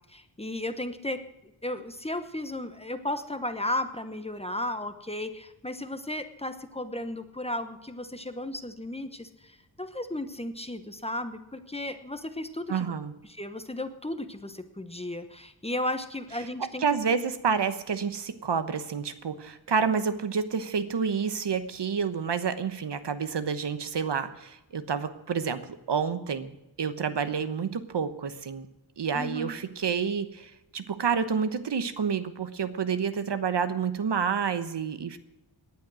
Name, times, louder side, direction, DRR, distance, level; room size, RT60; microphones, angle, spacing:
voice 1, 0.1-1.2 1.6-12.9 13.3-16.8 29.1-29.5, left 1 dB, 15° left, 9 dB, 1.0 m, -34 dB
voice 2, 12.7-13.1 16.8-25.6 25.9-28.7 29.0-35.2, right 6 dB, 65° right, 11 dB, 1.2 m, -29 dB
18.5 x 10.5 x 6.2 m, 0.93 s
wide cardioid pair, 135°, 46 cm